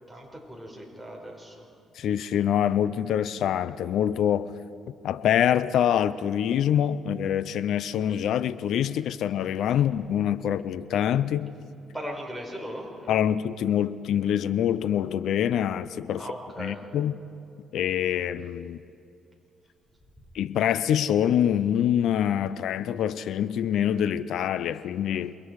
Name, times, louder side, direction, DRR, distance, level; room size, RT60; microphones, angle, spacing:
voice 1, 0.1-1.7 9.7-9.8 11.9-13.1 16.1-16.8, equal, ahead, 0 dB, 5.3 m, -38 dB
voice 2, 2.0-4.5 4.9-11.5 13.1-16.3 16.6-17.2 17.7-18.8 20.3-25.3, left 10 dB, 75° left, 15 dB, 0.6 m, -25 dB
28.5 x 21.5 x 4.8 m, 2.6 s
cardioid pair, 90°, 0 cm